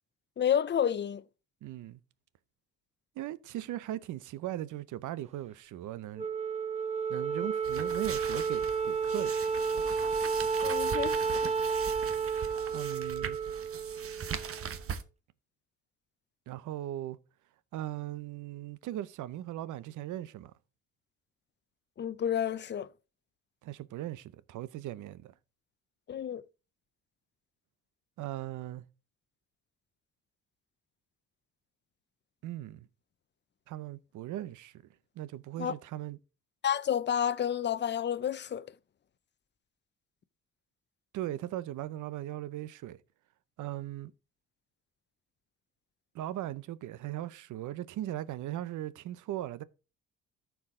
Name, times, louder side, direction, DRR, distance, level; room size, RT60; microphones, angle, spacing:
voice 1, 0.4-1.2 10.6-11.5 22.0-22.9 26.1-26.4 35.6-35.7 36.6-38.7, left 9 dB, 35° left, 0.6 m, -30 dB
voice 2, 1.6-2.0 3.2-6.3 7.1-9.4 12.7-13.4 16.5-17.2 17.7-20.5 23.6-25.3 28.2-28.8 32.4-32.9 33.7-34.8 35.2-36.2 41.1-43.0 43.6-44.1 46.1-49.6, right 13 dB, 80° right, 0.7 m, -38 dB
Wind instrument woodwind instrument, 6.2-14.7, right 5 dB, 20° right, 0.7 m, -31 dB
sound 1, 7.6-15.0, right 7 dB, 50° right, 1.0 m, -41 dB
14.0 x 4.7 x 3.7 m
cardioid pair, 90°, 30 cm